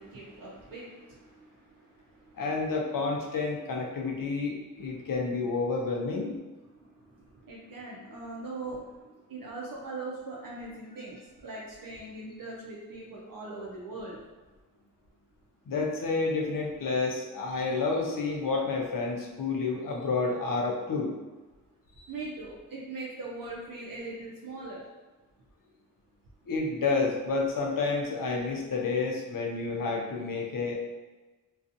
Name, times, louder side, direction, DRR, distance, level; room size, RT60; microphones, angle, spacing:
voice 1, 0.0-2.4 4.9-5.1 6.7-14.2 22.1-24.8, right 2 dB, 85° right, -4 dB, 0.5 m, -41 dB
voice 2, 2.4-6.4 15.7-21.1 22.0-22.1 26.5-30.7, left 3 dB, 75° left, 0 dB, 0.5 m, -30 dB
2.5 x 2.3 x 2.6 m, 1.2 s
wide cardioid pair, 75°, 33 cm